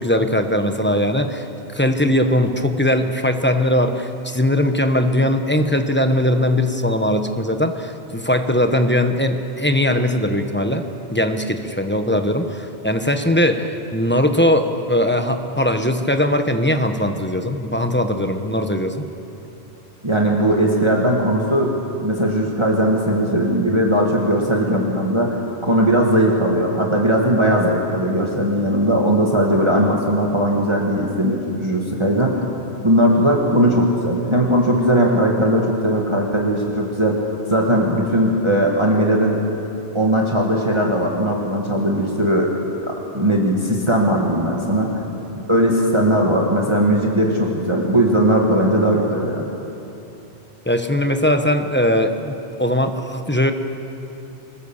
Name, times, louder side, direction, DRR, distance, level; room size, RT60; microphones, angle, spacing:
voice 1, 0.0-1.4 1.7-10.8 11.1-18.9 50.6-53.5, left 1 dB, 10° left, 6 dB, 1.1 m, -20 dB
voice 2, 20.0-32.4 32.8-37.2 37.5-39.4 39.9-42.5 43.1-44.9 45.5-49.5, right 1 dB, 25° right, -1 dB, 2.0 m, -18 dB
25.0 x 21.0 x 7.2 m, 2.8 s
omnidirectional pair, 1.2 m